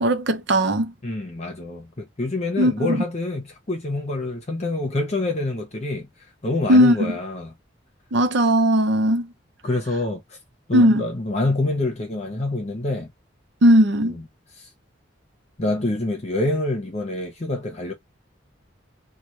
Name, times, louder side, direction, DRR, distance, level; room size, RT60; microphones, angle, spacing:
voice 1, 0.0-0.9 2.6-3.0 6.7-7.1 8.1-9.3 10.7-11.0 13.6-14.2, equal, 65° right, 0.7 m, -17 dB
voice 2, 1.0-6.1 6.4-7.5 9.6-10.2 10.7-13.1 14.0-14.2 14.6-14.7 15.6-17.9, left 2 dB, 35° left, 0.9 m, -26 dB
3.0 x 2.3 x 3.1 m
head